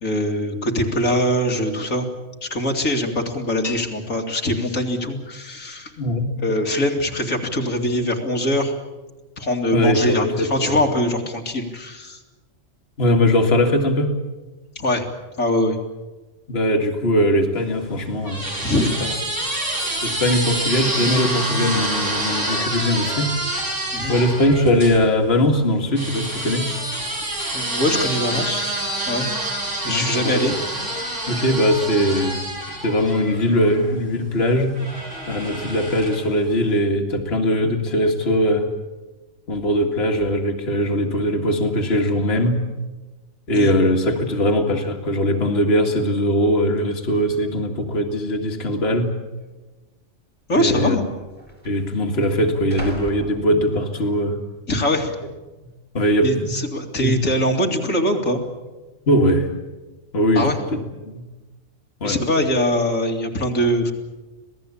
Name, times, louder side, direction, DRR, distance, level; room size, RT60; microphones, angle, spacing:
voice 1, 0.0-2.1 2.4-5.9 6.4-8.7 9.4-12.2 14.8-15.0 15.4-15.8 18.6-18.9 23.9-24.2 27.5-28.6 29.1-29.3 29.8-30.5 43.5-43.8 50.5-51.1 54.7-55.2 56.2-58.4 60.3-60.6 62.0-63.9, left 1 dB, 85° left, 2 dB, 3.0 m, -22 dB
voice 2, 6.0-6.3 9.7-10.8 13.0-14.1 16.5-18.5 18.8-19.1 20.0-23.3 24.1-26.7 29.9-30.6 31.3-32.4 32.8-34.8 35.3-38.7 39.5-42.6 43.5-49.1 50.5-51.0 51.6-54.4 55.9-56.6 57.0-57.2 59.1-59.5 60.1-61.2 62.0-62.2, equal, 50° left, 2 dB, 2.3 m, -20 dB
sound 1, 17.6-25.0 26.0-33.9 34.7-36.4, right 1 dB, 70° right, 6.3 m, -27 dB
sound 2, 46.8-46.9 47.6-48.1 48.4-48.5 49.4-49.6 50.6-50.7 50.9-54.1 54.6-55.0, equal, 35° right, 5.6 m, -39 dB
26.5 x 18.0 x 8.6 m, 1.2 s
omnidirectional pair, 1.3 m